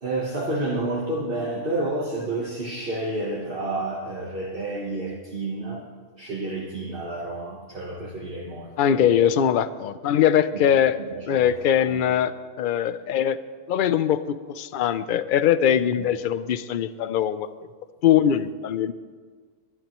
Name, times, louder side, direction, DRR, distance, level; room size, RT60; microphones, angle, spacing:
voice 1, 0.0-5.9 6.1-9.1 10.5-12.0 16.0-16.1, right 2 dB, 50° right, 1.4 m, -30 dB
voice 2, 8.8-11.0 11.3-13.4 13.7-17.5 18.0-18.9, left 9 dB, 55° left, 0.6 m, -21 dB
22.0 x 11.5 x 3.1 m
omnidirectional pair, 1.3 m